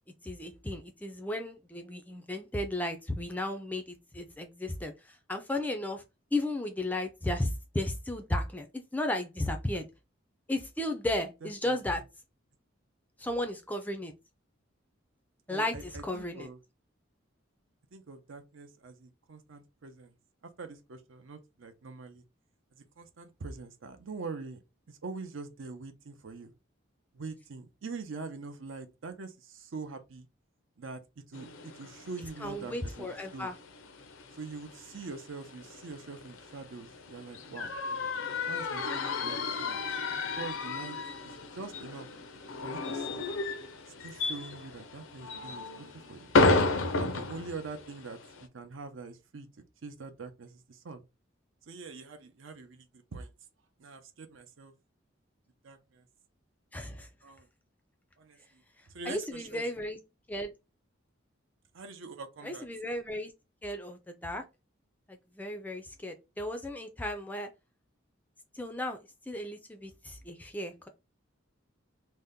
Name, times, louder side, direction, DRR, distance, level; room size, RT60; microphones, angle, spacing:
voice 1, 0.2-6.0 6.3-9.9 10.5-12.0 13.2-14.1 15.5-16.5 32.4-33.6 56.7-57.1 59.1-60.0 60.3-60.5 62.4-63.3 63.6-64.4 65.1-67.5 68.5-69.0 69.3-70.9, left 1 dB, 10° left, 0.3 m, -34 dB
voice 2, 11.4-11.8 15.5-16.6 17.9-20.1 20.6-22.2 22.7-24.6 24.9-26.5 27.1-30.3 30.8-31.0 31.3-33.5 34.4-37.8 38.5-39.8 40.4-41.0 41.2-42.1 42.6-43.2 44.0-46.4 47.0-49.5 49.8-51.0 51.7-52.9 53.1-53.3 53.8-54.7 55.6-56.0 57.2-57.5 58.2-58.6 58.9-59.7 61.7-62.7, right 4 dB, 75° right, 0.6 m, -44 dB
sound 1, 31.3-48.5, left 3 dB, 80° left, 0.5 m, -33 dB
2.7 x 2.1 x 3.5 m
head